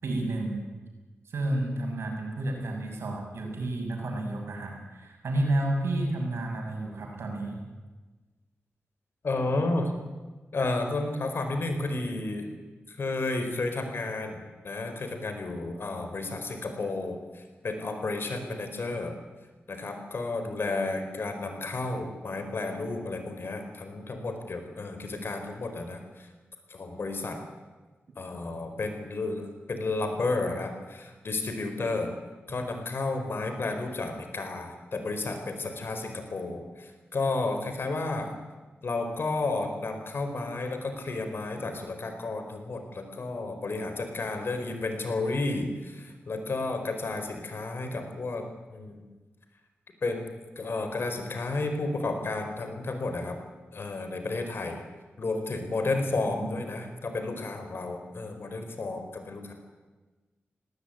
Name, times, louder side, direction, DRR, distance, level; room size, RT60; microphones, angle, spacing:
voice 1, 0.0-0.6 1.3-7.6 56.2-56.5, right 1 dB, 85° right, 1 dB, 6.4 m, -31 dB
voice 2, 9.2-9.9 10.5-12.5 13.0-19.1 19.7-26.0 26.7-27.4 28.2-32.1 32.5-38.3 38.8-48.4 48.7-49.0 50.0-53.4 53.7-54.8 55.2-59.5, left 2 dB, 65° left, 6 dB, 4.5 m, -32 dB
19.0 x 18.5 x 9.3 m, 1.3 s
cardioid pair, 50°, 4 cm